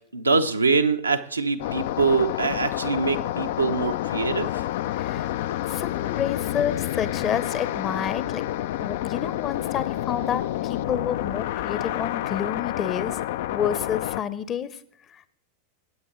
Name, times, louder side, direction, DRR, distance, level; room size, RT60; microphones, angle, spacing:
voice 1, 0.1-4.5, right 4 dB, 80° right, 6 dB, 0.8 m, -23 dB
sound 1, 1.6-14.2, left 13 dB, 55° left, 0.4 m, -29 dB
voice 2, 4.9-5.3 5.6-8.4 8.8-13.2 13.5-14.7 15.1-15.2, left 9 dB, 30° left, 16 dB, 0.8 m, -29 dB
18.5 x 8.3 x 3.2 m, 0.65 s
figure-of-eight pair, 90°, 0 cm